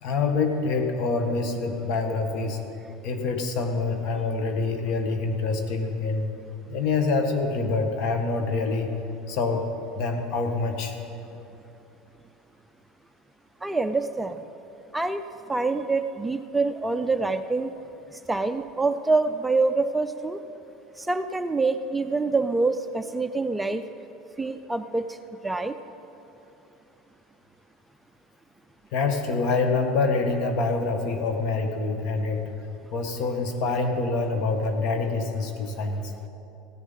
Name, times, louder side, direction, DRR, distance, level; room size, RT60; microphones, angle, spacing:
voice 1, 0.0-2.6 3.0-6.3 6.7-8.9 9.3-9.7 9.9-10.9 28.9-32.4 32.9-36.1, left 3 dB, 60° left, 5 dB, 1.5 m, -26 dB
voice 2, 13.6-14.4 14.9-15.2 15.5-17.7 18.3-20.4 21.0-23.8 24.4-25.2 25.4-25.7, right 3 dB, 10° right, 9 dB, 0.4 m, -25 dB
16.0 x 10.0 x 5.7 m, 2.9 s
supercardioid pair, 120°, 0 cm